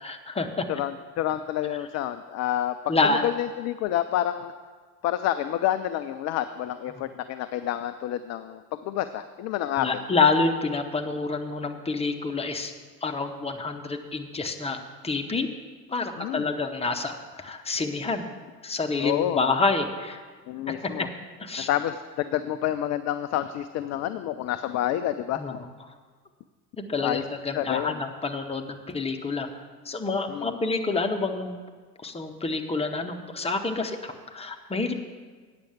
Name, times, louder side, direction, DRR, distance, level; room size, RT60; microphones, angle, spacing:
voice 1, 0.0-0.7 2.9-3.3 9.8-12.7 13.0-15.5 15.9-18.2 18.6-20.2 21.0-21.1 21.4-21.7 25.3-25.6 26.8-29.5 29.9-31.6 32.0-34.9, left 3 dB, 15° left, 4 dB, 0.9 m, -28 dB
voice 2, 0.7-2.8 3.0-4.5 5.0-9.9 16.2-16.5 19.0-19.4 20.5-21.1 21.7-25.6 27.0-27.3 27.5-28.0 30.3-30.6, left 12 dB, 35° left, 11 dB, 0.4 m, -28 dB
8.9 x 6.7 x 7.1 m, 1.5 s
hypercardioid pair, 65°, 47 cm